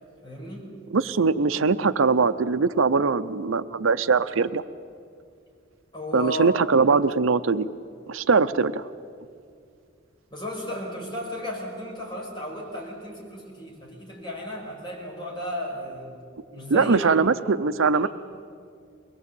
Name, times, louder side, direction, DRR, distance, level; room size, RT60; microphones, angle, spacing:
voice 1, 0.2-0.7 5.9-6.5 10.3-16.1 16.5-17.1 17.9-18.1, equal, 20° left, -2 dB, 5.6 m, -34 dB
voice 2, 0.9-4.6 6.1-7.7 8.1-8.9 16.7-18.1, right 4 dB, 85° right, 13 dB, 0.6 m, -21 dB
23.0 x 21.0 x 8.4 m, 2.3 s
head